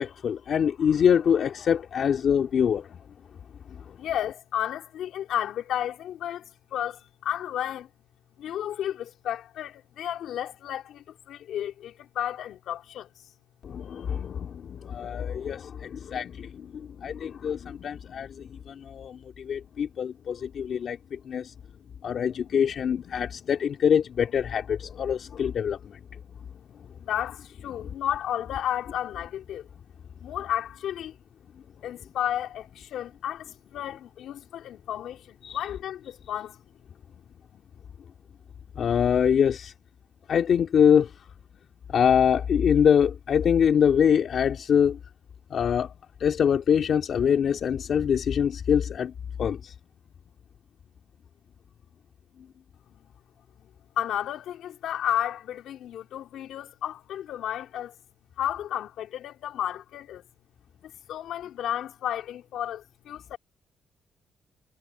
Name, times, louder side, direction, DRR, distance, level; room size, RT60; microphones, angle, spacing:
voice 1, 0.0-3.0 3.7-4.0 13.6-21.5 22.0-26.2 27.8-27.9 35.4-35.6 38.8-39.7 40.3-41.3 41.9-45.0 45.5-45.9 46.2-49.1 49.4-49.7, left 8 dB, 60° left, 2.2 m, -24 dB
voice 2, 4.0-7.9 8.4-13.1 27.0-29.7 30.2-31.1 31.8-36.6 52.9-53.1 53.6-53.7 54.0-57.9 58.4-60.2 60.8-63.4, left 11 dB, 80° left, 3.7 m, -32 dB
cardioid pair, 75°, 0 cm